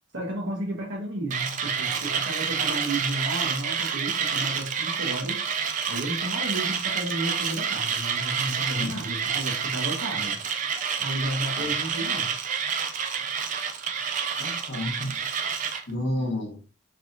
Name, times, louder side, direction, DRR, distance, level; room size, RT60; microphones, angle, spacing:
voice 1, 0.1-5.5 5.9-10.4 11.0-12.4, right 1 dB, 60° right, 1.3 m, -32 dB
Mechanisms, 1.3-15.8, right 6 dB, 40° right, 0.4 m, -29 dB
voice 2, 8.7-9.1 11.6-11.7 14.4-15.2 15.9-16.6, left 1 dB, 55° left, 1.1 m, -31 dB
3.3 x 3.1 x 2.6 m
head